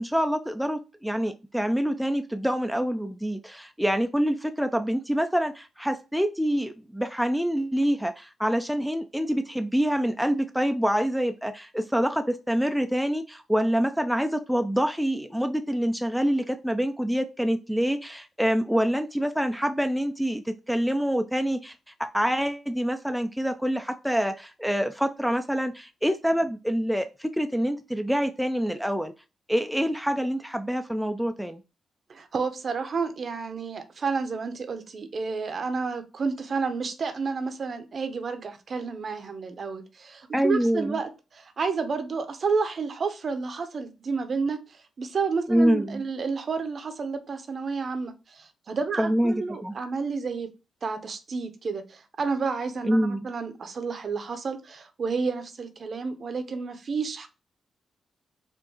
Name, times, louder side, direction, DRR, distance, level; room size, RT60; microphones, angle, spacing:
voice 1, 0.0-21.7 22.0-29.1 29.5-31.6 40.3-41.0 45.5-46.0 49.0-49.7 52.8-53.2, equal, ahead, 0.3 m, -26 dB
voice 2, 32.1-44.6 45.0-50.5 50.8-57.3, right 4 dB, 50° right, 0.6 m, -30 dB
4.5 x 2.5 x 2.8 m
cardioid pair, 95°, 0 cm